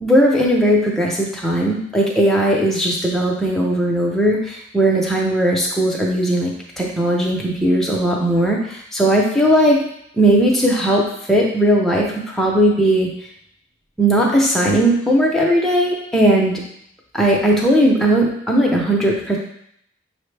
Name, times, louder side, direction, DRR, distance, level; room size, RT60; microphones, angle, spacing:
voice 1, 0.0-6.5 6.8-8.6 8.9-9.8 10.2-11.0 11.3-13.1 14.0-16.5 17.1-19.4, right 1 dB, ahead, -3 dB, 0.6 m, -17 dB
6.2 x 2.1 x 3.3 m, 0.71 s
head